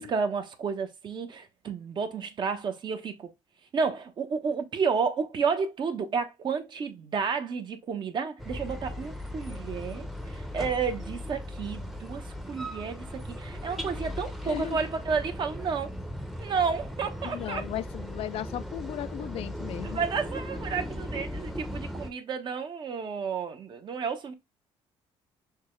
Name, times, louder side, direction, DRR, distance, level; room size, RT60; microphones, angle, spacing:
voice 1, 0.0-3.3 3.7-13.1 13.4-15.9 16.4-17.6 19.8-24.3, right 5 dB, 45° right, 1.1 m, -31 dB
sound 1, 8.4-22.1, equal, ahead, 0.8 m, -38 dB
voice 2, 14.4-14.8 17.2-20.0, left 13 dB, 65° left, 0.4 m, -36 dB
6.4 x 2.4 x 3.1 m
cardioid pair, 110°, 11 cm